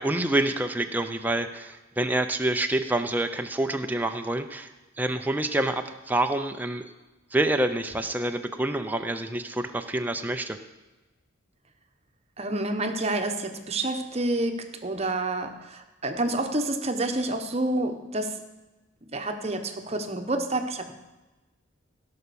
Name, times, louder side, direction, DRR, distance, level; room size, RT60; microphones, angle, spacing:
voice 1, 0.0-6.9 7.3-10.6, right 1 dB, 10° right, 6 dB, 0.5 m, -27 dB
voice 2, 12.4-18.4 19.0-20.9, right 2 dB, 30° right, 6 dB, 1.0 m, -28 dB
17.0 x 5.7 x 6.9 m, 1.1 s
head